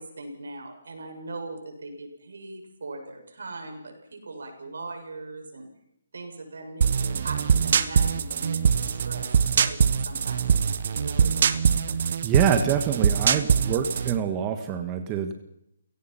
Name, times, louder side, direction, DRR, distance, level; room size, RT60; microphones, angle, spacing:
voice 1, 0.0-5.7 6.1-9.3 9.5-9.8 10.1-11.4, right 2 dB, 75° right, 4 dB, 7.1 m, -40 dB
sound 1, 6.8-14.2, right 7 dB, 50° right, 1.4 m, -23 dB
voice 2, 12.2-15.3, right 8 dB, 20° right, 6 dB, 1.6 m, -26 dB
29.5 x 17.5 x 5.8 m, 0.79 s
hypercardioid pair, 160°, 0 cm